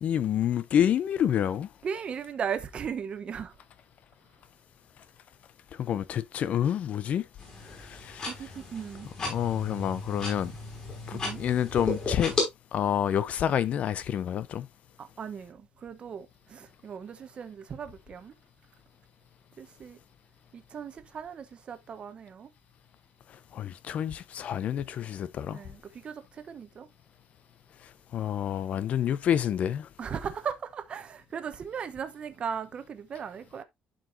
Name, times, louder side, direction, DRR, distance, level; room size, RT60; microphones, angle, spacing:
voice 1, 0.0-1.7 5.8-7.2 7.6-8.3 9.2-10.5 11.1-12.3 12.7-14.7 23.5-25.6 28.1-29.9, left 9 dB, 45° left, 0.6 m, -28 dB
voice 2, 1.8-3.5 8.3-9.1 11.1-11.4 15.0-18.3 19.6-20.0 20.5-22.5 25.5-26.9 30.0-33.6, right 7 dB, 35° right, 0.9 m, -37 dB
sound 1, 7.4-12.4, left 3 dB, 30° left, 5.1 m, -35 dB
11.5 x 5.0 x 2.6 m
cardioid pair, 150°, 3 cm